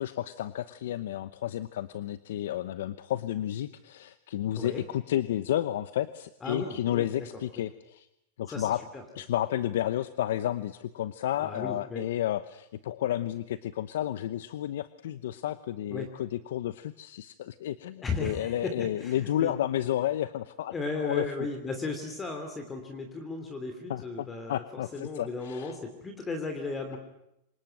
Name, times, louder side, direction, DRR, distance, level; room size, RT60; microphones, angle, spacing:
voice 1, 0.0-8.1 8.4-8.8 9.2-20.7 21.0-21.2 23.9-25.7, left 12 dB, 75° left, 14 dB, 0.9 m, -31 dB
voice 2, 6.4-7.3 8.5-9.0 11.4-12.0 15.9-16.1 18.0-19.5 20.7-24.6 24.9-27.0, left 3 dB, 15° left, 6 dB, 2.9 m, -35 dB
25.5 x 20.5 x 9.1 m, 0.85 s
supercardioid pair, 150°, 0 cm